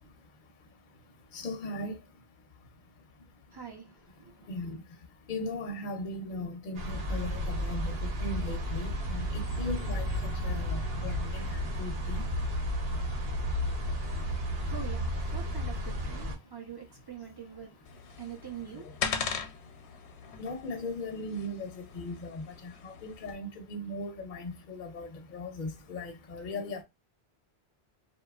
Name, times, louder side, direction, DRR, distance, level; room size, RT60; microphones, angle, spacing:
voice 1, 1.3-2.0 4.5-4.8 5.3-10.1 10.4-12.2 18.7-18.9 20.4-26.8, left 2 dB, 55° left, 0.6 m, -38 dB
voice 2, 3.5-4.6 13.9-19.7 20.1-20.2, right 7 dB, 30° right, 0.4 m, -46 dB
sound 1, 6.7-16.3, equal, 65° right, 1.0 m, -32 dB
sound 2, 17.9-23.4, left 6 dB, 85° left, 0.9 m, -39 dB
2.7 x 2.2 x 2.3 m
omnidirectional pair, 1.1 m